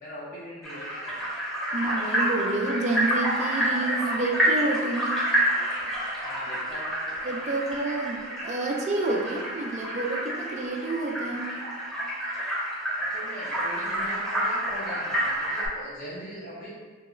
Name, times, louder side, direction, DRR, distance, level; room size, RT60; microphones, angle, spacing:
voice 1, 0.0-1.3 6.2-7.1 13.0-16.7, equal, 40° left, -7 dB, 0.6 m, -40 dB
sound 1, 0.6-15.7, right 1 dB, ahead, 0.8 m, -29 dB
voice 2, 1.7-5.2 7.2-11.5, right 2 dB, 35° right, 1 dB, 0.4 m, -29 dB
2.9 x 2.1 x 3.7 m, 1.5 s
head